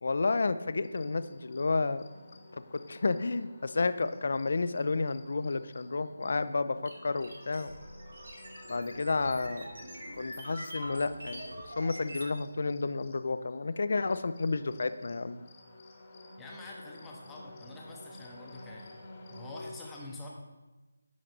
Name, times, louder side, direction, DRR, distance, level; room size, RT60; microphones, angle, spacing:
voice 1, 0.0-2.1 2.7-7.7 8.7-9.6 10.2-11.4 11.8-15.4, left 3 dB, 55° left, 13 dB, 0.4 m, -31 dB
sound 1, 0.8-19.7, left 2 dB, 30° left, 1.0 m, -53 dB
sound 2, 6.8-12.3, equal, 65° right, 1.3 m, -44 dB
voice 2, 16.4-20.3, left 2 dB, 5° left, -3 dB, 0.8 m, -46 dB
10.0 x 3.8 x 3.4 m, 1.1 s
figure-of-eight pair, 160°, 0 cm